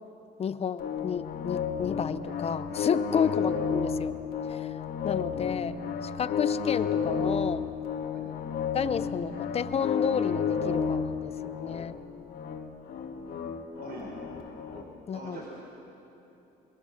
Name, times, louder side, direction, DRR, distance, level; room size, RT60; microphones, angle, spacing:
voice 1, 0.4-4.2 4.5-4.7 5.0-5.8 6.0-7.7 8.7-12.0 15.1-15.4, left 7 dB, 35° left, 14 dB, 0.8 m, -31 dB
sound 1, 0.8-14.8, left 6 dB, 60° left, 2.0 m, -31 dB
voice 2, 15.1-15.5, right 3 dB, 65° right, -3 dB, 5.0 m, -43 dB
23.5 x 23.0 x 6.5 m, 3.0 s
cardioid pair, 110°, 17 cm